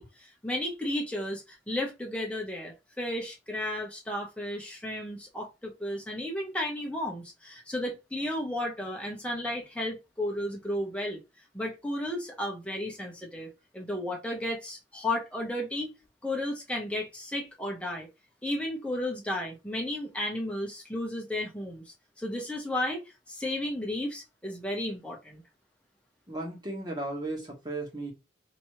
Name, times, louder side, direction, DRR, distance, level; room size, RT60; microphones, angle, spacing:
voice 1, 0.0-11.2 11.5-15.9 16.2-18.1 18.4-21.8 22.2-23.0 23.3-25.4, left 1 dB, 5° left, 1.3 m, -33 dB
voice 2, 26.3-28.1, right 2 dB, 25° right, 1.7 m, -35 dB
5.1 x 3.0 x 3.2 m
head